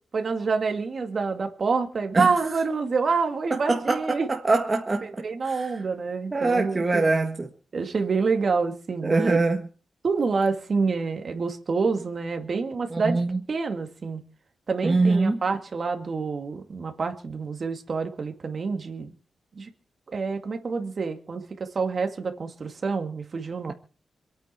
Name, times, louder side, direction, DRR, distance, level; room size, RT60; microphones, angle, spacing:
voice 1, 0.1-4.3 5.0-7.1 7.7-9.4 10.0-13.2 13.5-14.2 14.7-19.1 19.6-19.7 20.1-23.7, right 4 dB, 45° right, 2.3 m, -27 dB
voice 2, 3.5-5.1 5.4-5.7 6.3-7.3 9.0-9.6 12.9-13.4 14.8-15.4, right 3 dB, 25° right, 1.5 m, -23 dB
27.0 x 9.2 x 4.5 m
wide cardioid pair, 135°, 0 cm